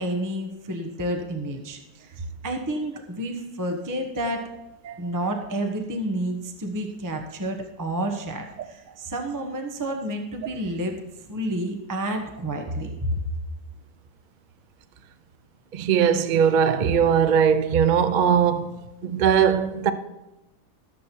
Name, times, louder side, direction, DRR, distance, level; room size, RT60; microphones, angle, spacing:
voice 1, 0.0-2.1 2.4-4.5 5.0-10.9 11.3-13.2, right 1 dB, 15° right, 0.9 m, -30 dB
voice 2, 15.7-18.8 19.0-19.9, right 7 dB, 75° right, 0.4 m, -20 dB
14.5 x 7.5 x 4.5 m
omnidirectional pair, 1.8 m